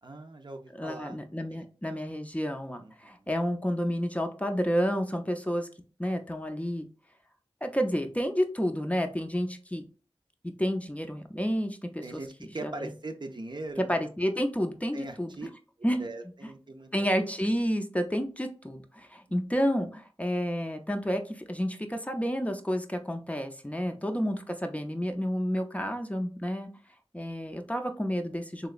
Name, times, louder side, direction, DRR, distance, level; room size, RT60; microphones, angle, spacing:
voice 1, 0.0-1.2 1.5-1.7 2.8-3.3 12.0-14.1 14.9-15.5 16.0-17.1 23.9-24.0, right 2 dB, 50° right, 5 dB, 0.5 m, -41 dB
voice 2, 0.7-5.7 6.0-6.9 7.6-9.8 10.6-12.2 12.6-12.9 13.9-15.3 15.8-16.0 16.9-26.7 27.1-28.7, equal, 15° left, 5 dB, 0.5 m, -30 dB
3.3 x 2.9 x 2.4 m, 0.38 s
wide cardioid pair, 45°, 10 cm